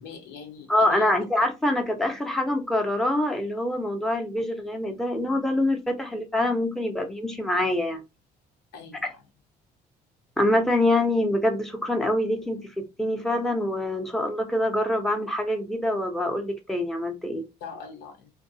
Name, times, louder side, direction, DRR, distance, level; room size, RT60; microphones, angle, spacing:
voice 1, 0.0-1.2 8.7-9.2 17.6-18.3, left 6 dB, 85° left, 0.8 m, -42 dB
voice 2, 0.7-8.0 10.4-17.4, left 1 dB, ahead, 0.6 m, -25 dB
2.6 x 2.2 x 2.6 m
cardioid pair, 110°, 17 cm